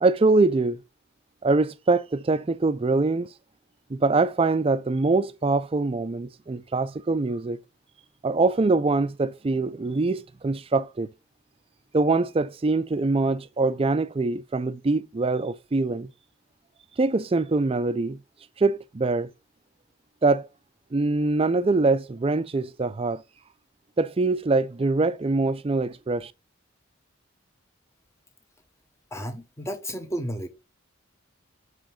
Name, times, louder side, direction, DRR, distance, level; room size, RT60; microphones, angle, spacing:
voice 1, 0.0-0.8 1.4-3.3 3.9-7.6 8.2-11.1 11.9-16.1 17.0-18.2 18.6-19.3 20.2-20.5 20.9-23.2 24.0-26.3, right 3 dB, 30° right, 0.4 m, -23 dB
voice 2, 29.1-30.5, equal, 15° left, 1.1 m, -32 dB
5.7 x 5.1 x 3.7 m
head